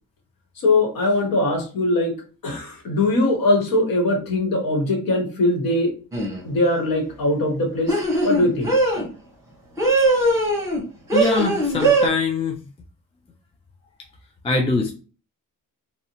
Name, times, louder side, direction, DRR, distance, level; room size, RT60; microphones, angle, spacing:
voice 1, 0.6-2.1 2.4-5.9 6.4-8.7, left 2 dB, 85° left, 2 dB, 1.0 m, -21 dB
sound 1, 6.1-6.4 7.9-9.1 9.8-10.8 11.1-12.1, right 2 dB, 10° right, 0.8 m, -20 dB
voice 2, 11.1-12.6 14.4-14.9, left 3 dB, 20° left, 1 dB, 0.3 m, -23 dB
2.7 x 2.0 x 2.8 m, 0.36 s
wide cardioid pair, 160°, 34 cm